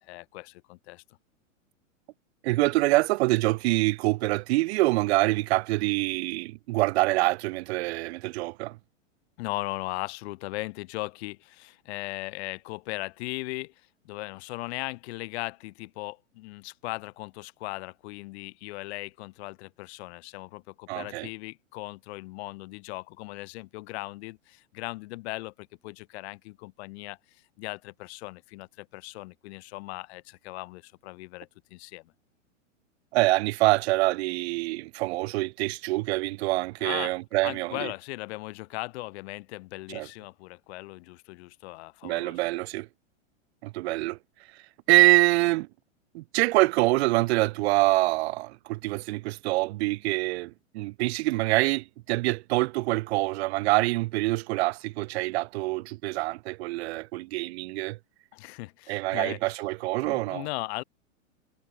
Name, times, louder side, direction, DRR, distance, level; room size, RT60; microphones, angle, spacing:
voice 1, 0.0-1.0 9.4-13.7 14.0-32.0 36.8-37.1 37.4-42.4 58.3-59.4 60.0-60.8, left 21 dB, 55° left, 2.7 m, -38 dB
voice 2, 2.4-8.8 20.9-21.3 33.1-37.9 39.9-40.1 42.0-42.9 43.6-44.2 44.9-45.7 46.1-58.0 58.9-60.5, right 20 dB, 55° right, 1.2 m, -25 dB
hypercardioid pair, 120°, 39 cm